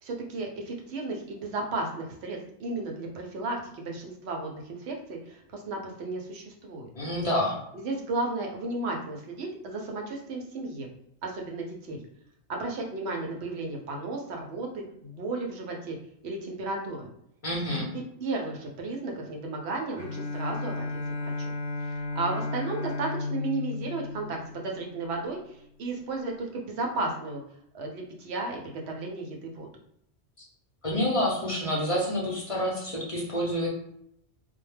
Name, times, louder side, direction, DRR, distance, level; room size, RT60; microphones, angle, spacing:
voice 1, 0.0-6.9 7.7-10.9 11.2-12.0 12.5-16.0 16.2-17.1 17.7-20.9 21.8-27.4 27.7-29.7, right 3 dB, 70° right, 1 dB, 0.9 m, -34 dB
voice 2, 7.0-7.6 17.4-17.9 30.8-33.7, equal, 35° left, -4 dB, 0.6 m, -28 dB
Bowed string instrument, 20.0-25.2, left 3 dB, 80° left, 1.0 m, -34 dB
2.2 x 2.1 x 3.2 m, 0.74 s
omnidirectional pair, 1.2 m